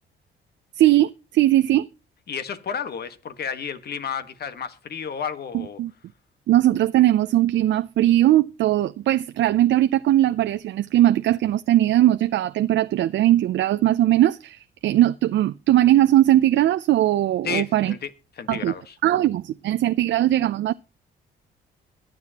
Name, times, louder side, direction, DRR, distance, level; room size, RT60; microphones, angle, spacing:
voice 1, 0.8-1.9 5.5-5.9 6.5-17.9 18.5-18.7 19.0-20.7, right 13 dB, 70° right, 0.5 m, -19 dB
voice 2, 2.3-5.8 17.4-18.1 18.4-19.0, left 7 dB, 55° left, 1.4 m, -31 dB
21.5 x 7.8 x 2.9 m
cardioid pair, 90°, 20 cm